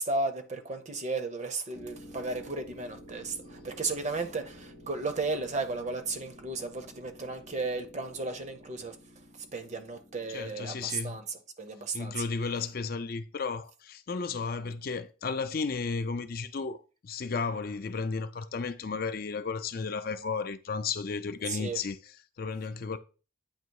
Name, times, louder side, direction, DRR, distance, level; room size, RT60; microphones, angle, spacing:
voice 1, 0.0-9.0 9.4-12.2 21.5-21.8, right 3 dB, 35° right, 0.7 m, -34 dB
sound 1, 1.7-11.2, equal, 90° right, 2.9 m, -51 dB
voice 2, 10.3-11.2 11.9-23.0, left 4 dB, 45° left, 0.4 m, -34 dB
8.8 x 3.0 x 4.6 m
head